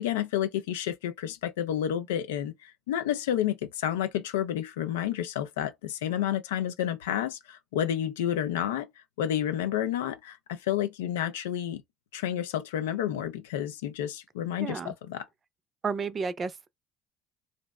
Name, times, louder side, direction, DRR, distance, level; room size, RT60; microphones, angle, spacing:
voice 1, 0.0-8.9 9.2-11.8 12.1-15.3, left 10 dB, 80° left, 0.4 m, -30 dB
voice 2, 14.6-14.9 15.8-16.7, right 5 dB, 35° right, 0.5 m, -32 dB
2.5 x 2.0 x 3.3 m
hypercardioid pair, 65°, 0 cm